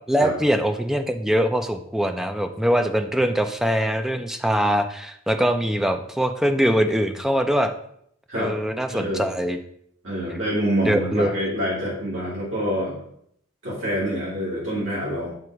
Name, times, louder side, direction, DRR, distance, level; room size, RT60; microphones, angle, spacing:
voice 1, 0.1-7.7 8.3-9.6 10.8-11.5, equal, ahead, 6 dB, 0.4 m, -22 dB
voice 2, 8.9-9.2 10.0-13.0 13.6-15.3, equal, 75° right, -8 dB, 2.3 m, -26 dB
7.7 x 2.9 x 4.6 m, 0.69 s
head